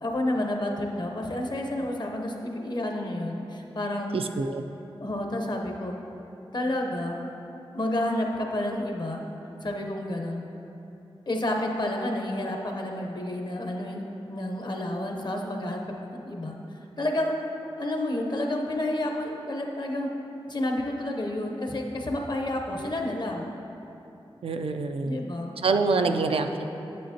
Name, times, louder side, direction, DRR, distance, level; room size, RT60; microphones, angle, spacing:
voice 1, 0.0-4.1 5.0-6.0 6.5-7.2 7.7-9.2 9.6-10.4 11.3-14.0 14.3-15.8 16.2-16.5 17.0-17.3 17.8-20.1 20.5-23.5 25.0-25.6 26.0-26.1, left 1 dB, 50° left, 2 dB, 0.8 m, -30 dB
voice 2, 4.1-4.6 24.4-25.2 25.6-26.6, right 4 dB, 80° right, 6 dB, 0.4 m, -26 dB
8.5 x 8.0 x 2.8 m, 2.9 s
wide cardioid pair, 85°, 10 cm